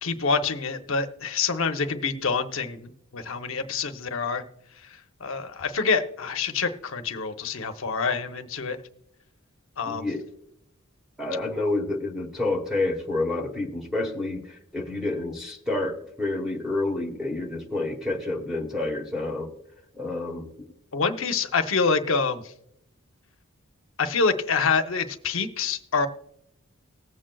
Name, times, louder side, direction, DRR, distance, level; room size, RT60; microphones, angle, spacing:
voice 1, 0.0-4.4 5.2-8.8 9.8-10.1 20.9-22.4 24.0-26.1, left 5 dB, 65° left, 7 dB, 0.8 m, -26 dB
voice 2, 9.9-10.2 11.2-19.5 20.0-20.4, left 2 dB, ahead, 2 dB, 1.1 m, -29 dB
19.0 x 7.5 x 2.3 m, 0.77 s
head